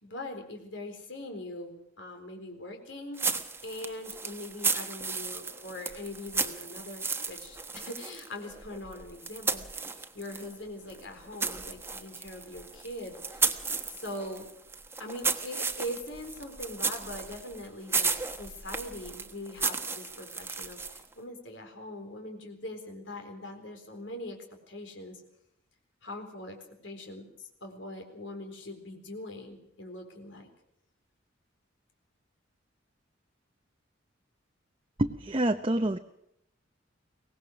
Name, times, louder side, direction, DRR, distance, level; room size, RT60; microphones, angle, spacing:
voice 1, 0.0-3.2 3.6-9.7 9.9-13.6 13.9-14.5 15.0-25.2 26.0-27.3 27.6-30.5, left 1 dB, 70° left, 4 dB, 4.2 m, -42 dB
sound 1, 3.2-10.5 10.9-21.1, right 4 dB, 15° right, 1.3 m, -34 dB
voice 2, 35.0-36.0, right 1 dB, 30° right, 6 dB, 0.8 m, -27 dB
23.0 x 19.0 x 6.4 m, 0.76 s
head